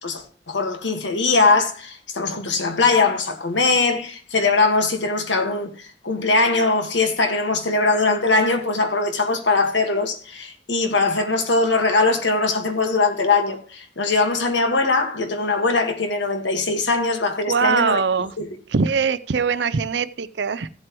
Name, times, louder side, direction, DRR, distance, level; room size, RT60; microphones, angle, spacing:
voice 1, 0.0-18.5, left 3 dB, 75° left, 1.5 m, -21 dB
voice 2, 17.5-18.3 18.7-20.7, right 5 dB, 65° right, 0.5 m, -22 dB
15.5 x 7.6 x 3.0 m
head